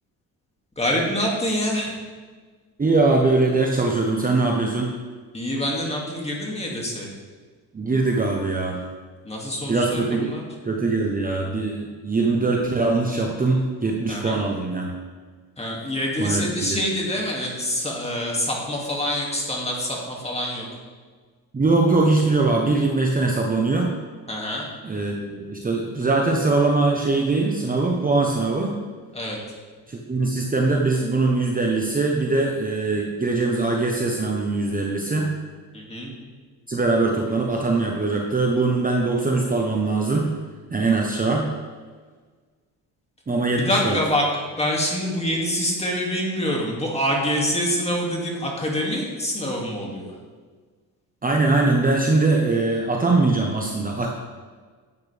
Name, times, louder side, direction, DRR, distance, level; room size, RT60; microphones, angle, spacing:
voice 1, 0.8-2.0 5.3-7.1 9.2-10.4 14.1-14.4 15.6-20.7 24.3-24.7 29.1-29.4 35.7-36.1 43.7-44.3 44.6-50.2, equal, 15° left, -2 dB, 2.3 m, -26 dB
voice 2, 2.8-4.9 7.7-8.8 9.7-10.3 10.6-14.9 16.2-16.8 21.5-23.9 24.8-28.8 29.9-35.3 36.7-40.3 40.7-41.5 43.3-44.0 51.2-54.1, right 3 dB, 20° right, 0 dB, 0.9 m, -22 dB
11.0 x 8.2 x 3.4 m, 1.5 s
cardioid pair, 110°, 38 cm